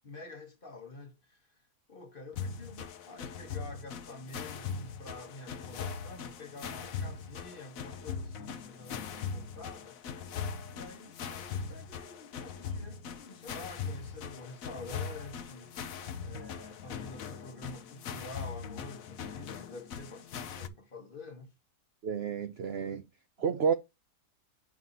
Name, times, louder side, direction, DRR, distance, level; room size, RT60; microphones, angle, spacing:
voice 1, 0.0-1.6 1.9-10.2 10.7-15.9 16.2-21.5 23.6-23.7, left 3 dB, 35° left, 1.2 m, -48 dB
sound 1, 2.3-20.7, left 6 dB, 65° left, 1.1 m, -40 dB
voice 2, 22.0-23.0 23.4-23.7, right 6 dB, 65° right, 0.6 m, -30 dB
9.2 x 5.0 x 2.7 m
omnidirectional pair, 1.8 m